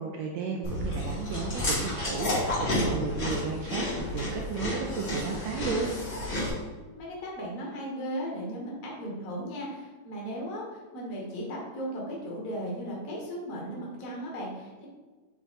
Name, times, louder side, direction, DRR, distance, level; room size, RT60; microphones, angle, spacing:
voice 1, 0.0-5.9, right 5 dB, 80° right, 1 dB, 1.6 m, -34 dB
Chewing mastication, 0.6-6.5, left 1 dB, 25° left, 1.9 m, -31 dB
voice 2, 7.0-14.9, equal, 80° left, -3 dB, 0.7 m, -36 dB
7.4 x 3.5 x 4.0 m, 1.3 s
omnidirectional pair, 3.6 m